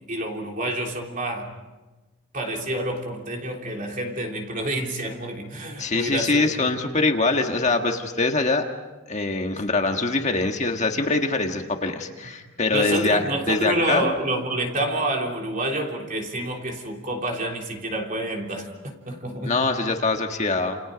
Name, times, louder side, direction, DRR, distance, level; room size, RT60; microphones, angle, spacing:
voice 1, 0.1-1.5 2.3-6.5 12.7-19.6, right 1 dB, 40° right, 1 dB, 3.4 m, -28 dB
voice 2, 5.8-8.6 9.1-14.1 19.4-20.8, left 3 dB, 35° left, 4 dB, 1.6 m, -23 dB
29.5 x 29.0 x 5.2 m, 1.2 s
head